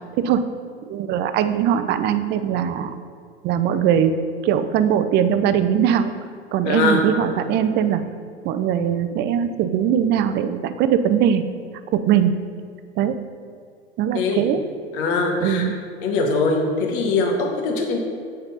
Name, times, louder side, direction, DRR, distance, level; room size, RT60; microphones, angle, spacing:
voice 1, 0.9-2.9 3.4-6.1 6.5-8.0 8.4-11.4 11.9-12.3 13.0-13.2 14.0-14.6 15.4-15.7, right 9 dB, 35° right, 10 dB, 0.4 m, -20 dB
voice 2, 6.6-7.0 14.1-14.5 14.9-15.7 16.0-18.0, left 3 dB, 55° left, 2 dB, 1.0 m, -22 dB
7.7 x 4.2 x 3.9 m, 2.2 s
hypercardioid pair, 85°, 31 cm